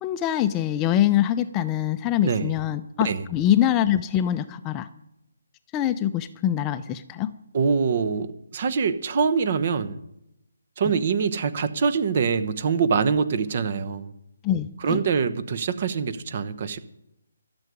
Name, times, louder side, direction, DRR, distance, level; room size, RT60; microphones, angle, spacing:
voice 1, 0.0-4.9 5.7-7.3 14.4-15.0, left 11 dB, 20° left, 11 dB, 0.5 m, -24 dB
voice 2, 2.2-2.5 3.0-3.2 7.5-10.0 10.8-14.1 14.8-16.8, right 5 dB, 45° right, 13 dB, 1.0 m, -24 dB
13.0 x 7.0 x 9.7 m, 0.83 s
figure-of-eight pair, 150°, 0 cm